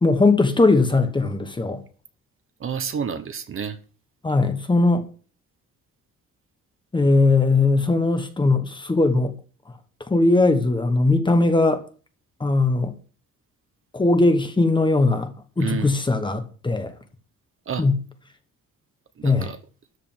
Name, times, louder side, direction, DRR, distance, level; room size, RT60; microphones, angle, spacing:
voice 1, 0.0-1.8 4.2-5.1 6.9-9.3 10.1-11.8 12.4-12.9 13.9-16.9 17.8-18.0 19.2-19.5, left 3 dB, 15° left, 1.2 m, -19 dB
voice 2, 2.6-3.8 15.6-16.0 17.7-17.9 19.2-19.6, right 7 dB, 40° right, 1.1 m, -30 dB
13.0 x 5.2 x 8.9 m
cardioid pair, 175°, 31 cm